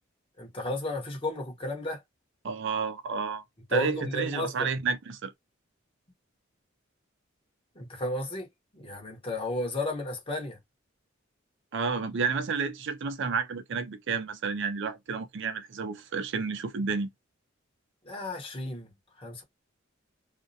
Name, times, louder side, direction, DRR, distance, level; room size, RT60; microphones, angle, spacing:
voice 1, 0.4-2.0 3.7-4.7 7.7-8.5 8.7-10.6 18.0-18.9 19.2-19.4, left 1 dB, 25° left, 1.0 m, -33 dB
voice 2, 2.4-3.4 3.7-5.3 11.7-17.1, right 5 dB, 60° right, 0.5 m, -30 dB
2.4 x 2.0 x 2.7 m
head